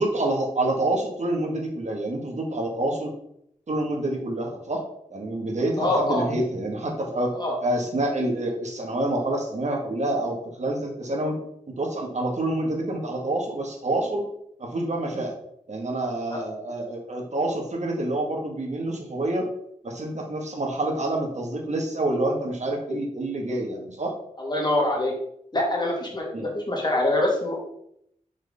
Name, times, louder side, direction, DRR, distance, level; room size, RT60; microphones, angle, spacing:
voice 1, 0.0-3.1 3.7-4.8 5.1-7.4 7.6-11.4 11.7-14.2 14.6-15.3 15.7-19.5 19.8-24.1 26.3-26.5, right 1 dB, 60° right, 0 dB, 2.1 m, -27 dB
voice 2, 5.8-6.3 7.3-7.6 16.3-16.4 24.4-25.1 25.5-27.7, left 1 dB, 35° left, -1 dB, 2.5 m, -24 dB
6.0 x 4.7 x 5.5 m, 0.73 s
wide cardioid pair, 65°, 13 cm